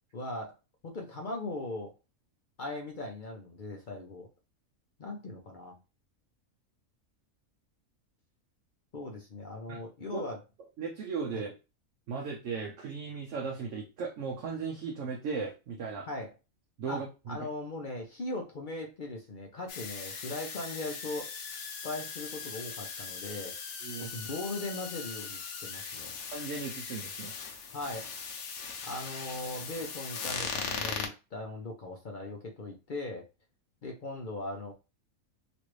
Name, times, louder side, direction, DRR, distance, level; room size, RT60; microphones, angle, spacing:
voice 1, 0.1-0.6 0.8-1.9 2.6-4.3 5.0-5.8 8.9-10.4 11.3-11.4 16.1-16.3 16.9-17.0 17.3-23.5 24.0-26.2 27.7-28.1 28.8-33.2 33.8-34.7, left 2 dB, 50° left, 1 dB, 0.6 m, -39 dB
voice 2, 10.8-11.5 12.1-16.1 16.8-17.4 23.8-24.1 26.3-27.7, right 5 dB, 65° right, 1 dB, 0.9 m, -37 dB
sound 1, 19.7-31.1, left 5 dB, 85° left, 1.1 m, -39 dB
3.1 x 2.5 x 3.1 m, 0.29 s
omnidirectional pair, 1.5 m